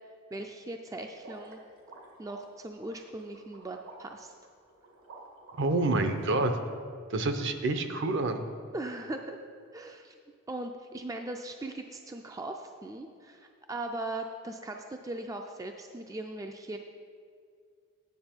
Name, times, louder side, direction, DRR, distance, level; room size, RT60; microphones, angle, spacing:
voice 1, 0.3-1.6 2.2-4.3 8.7-9.4 9.7-10.1 10.5-16.8, right 2 dB, 15° right, 4 dB, 0.3 m, -39 dB
sound 1, 1.1-6.2, right 2 dB, 85° right, 1.7 m, -51 dB
voice 2, 5.6-6.5 7.1-8.4, right 2 dB, 60° right, 8 dB, 0.6 m, -27 dB
9.4 x 7.2 x 4.4 m, 2.2 s
head